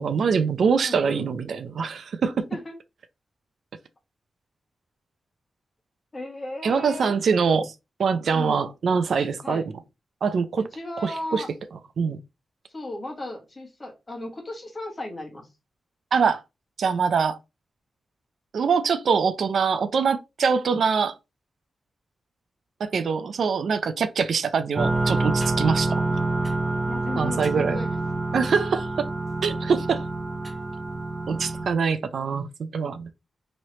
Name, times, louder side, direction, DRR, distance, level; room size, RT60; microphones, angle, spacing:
voice 1, 0.0-2.5 6.6-7.7 8.0-9.6 10.2-10.6 11.0-11.4 12.0-12.2 16.1-16.4 16.8-17.4 18.5-21.1 22.8-26.1 27.2-27.8 28.3-29.1 29.4-30.0 31.3-33.1, right 5 dB, 70° right, 0.4 m, -24 dB
voice 2, 0.8-1.3 2.5-2.7 6.1-7.1 8.3-8.6 9.4-9.6 10.6-11.5 12.7-15.5 23.4-23.5 26.8-28.0, left 2 dB, 30° left, 1.3 m, -35 dB
sound 1, 24.8-31.7, right 2 dB, 20° right, 0.9 m, -27 dB
3.1 x 2.8 x 3.0 m
wide cardioid pair, 110°, 0 cm